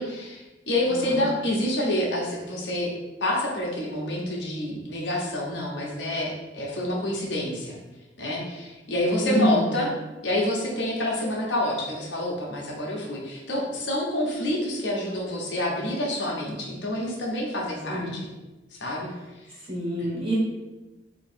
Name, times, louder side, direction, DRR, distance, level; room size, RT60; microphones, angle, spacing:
voice 1, 0.0-2.9 3.2-7.8 8.2-9.9 10.2-18.3 18.8-19.1, left 1 dB, 80° left, -3 dB, 1.0 m, -28 dB
voice 2, 0.9-1.3 9.2-9.7 17.9-18.2 19.7-20.3, equal, 30° right, -7 dB, 1.5 m, -26 dB
3.1 x 2.9 x 4.4 m, 1.1 s
head